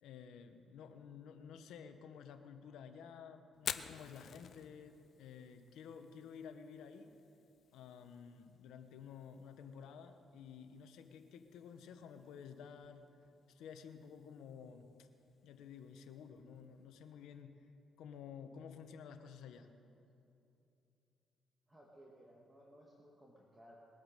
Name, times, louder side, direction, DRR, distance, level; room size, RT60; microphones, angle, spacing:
voice 1, 0.0-7.1 7.7-13.1 13.5-15.1 15.4-17.6 18.0-19.7, left 7 dB, 85° left, 8 dB, 1.0 m, -52 dB
Fire, 3.5-17.4, left 8 dB, 60° left, 0.6 m, -53 dB
voice 2, 21.7-23.8, equal, 15° right, -3 dB, 1.9 m, -60 dB
21.0 x 8.6 x 6.6 m, 2.7 s
cardioid pair, 90°, 0 cm